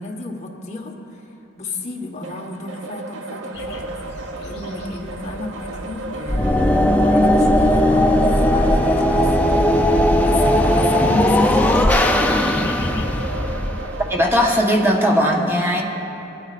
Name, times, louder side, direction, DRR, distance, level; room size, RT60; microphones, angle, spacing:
voice 1, 0.0-1.3 1.6-6.6 7.1-9.8 10.2-12.0, left 2 dB, 35° left, -1 dB, 1.3 m, -33 dB
sound 1, 2.2-14.2, right 2 dB, 85° right, 0.6 m, -34 dB
sound 2, 3.5-13.4, left 1 dB, 60° left, 1.2 m, -37 dB
sound 3, 6.3-14.4, left 1 dB, 10° left, 0.4 m, -17 dB
voice 2, 14.1-15.8, equal, 10° right, 0 dB, 1.1 m, -18 dB
19.5 x 13.0 x 2.5 m, 2.9 s
head